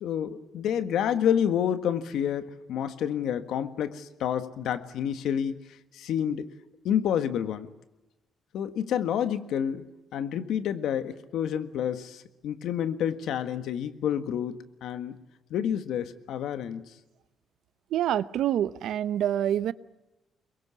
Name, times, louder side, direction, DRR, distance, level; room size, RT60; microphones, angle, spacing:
voice 1, 0.0-5.5 5.9-6.5 6.8-7.7 8.5-9.8 10.1-15.2 15.5-16.9, left 9 dB, 80° left, 10 dB, 1.6 m, -29 dB
voice 2, 17.9-19.7, right 11 dB, 80° right, 16 dB, 0.8 m, -26 dB
24.0 x 22.0 x 8.4 m, 0.99 s
cardioid pair, 90°, 0 cm